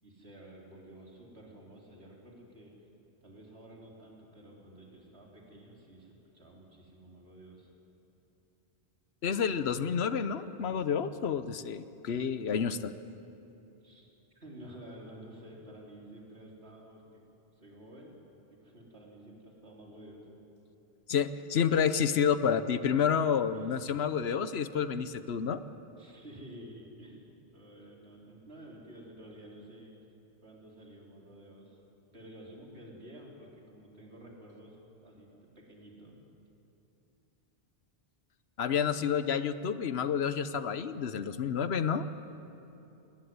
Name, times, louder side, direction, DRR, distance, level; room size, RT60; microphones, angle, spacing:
voice 1, 0.0-2.7 3.2-7.7 13.8-14.1 14.3-17.2 17.6-18.1 18.5-20.2 23.5-24.0 26.0-27.2 27.5-30.0 30.4-31.8 32.1-36.2, right 1 dB, 75° right, -2 dB, 4.0 m, -51 dB
voice 2, 9.2-12.9 21.1-25.6 38.6-42.1, left 7 dB, 75° left, 13 dB, 1.1 m, -29 dB
20.0 x 19.5 x 9.5 m, 2.9 s
omnidirectional pair, 1.1 m